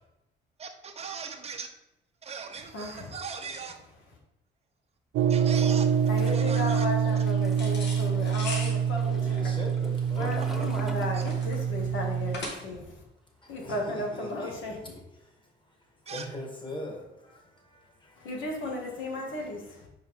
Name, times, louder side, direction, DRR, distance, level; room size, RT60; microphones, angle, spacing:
voice 1, 0.6-1.7 2.2-3.8 5.3-5.9 6.3-6.9 7.2-7.3 10.6-10.7 11.1-11.2 16.1-16.3, right 5 dB, 30° right, 4 dB, 0.9 m, -39 dB
voice 2, 2.7-3.1 6.1-9.5 10.1-12.9 13.5-14.9 18.2-19.6, left 1 dB, 80° left, 0 dB, 1.8 m, -34 dB
sound 1, 5.1-12.4, right 7 dB, 80° right, 0.4 m, -26 dB
Toilet flush, 5.4-11.8 12.1-13.7, right 1 dB, ahead, 0.7 m, -48 dB
sound 2, 7.5-12.9, left 2 dB, 60° left, 1.9 m, -40 dB
voice 3, 9.1-10.7 13.4-15.0 16.1-18.4 19.1-19.4, left 1 dB, 25° left, 1 dB, 1.9 m, -41 dB
5.4 x 4.7 x 4.6 m, 0.90 s
cardioid pair, 90°, 20 cm